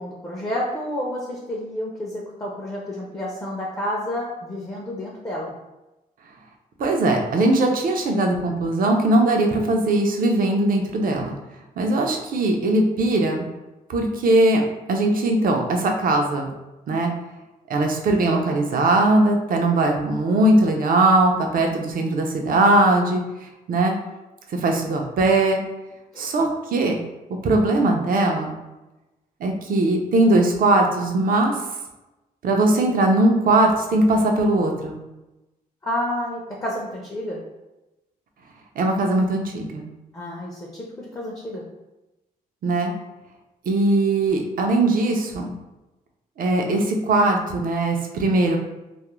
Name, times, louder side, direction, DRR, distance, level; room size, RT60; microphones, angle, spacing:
voice 1, 0.0-5.5 26.1-26.3 35.8-37.4 40.1-41.6, left 1 dB, 20° left, -3 dB, 0.5 m, -30 dB
voice 2, 6.8-11.4 11.8-13.5 13.9-14.6 14.9-16.5 16.9-17.1 17.7-24.0 24.5-25.6 26.2-27.0 27.4-28.5 29.4-31.5 32.4-35.0 38.8-39.9 42.6-42.9 43.7-45.5 46.4-48.6, right 2 dB, 65° right, 2 dB, 0.5 m, -20 dB
2.4 x 2.0 x 3.0 m, 1.0 s
cardioid pair, 90°, 15 cm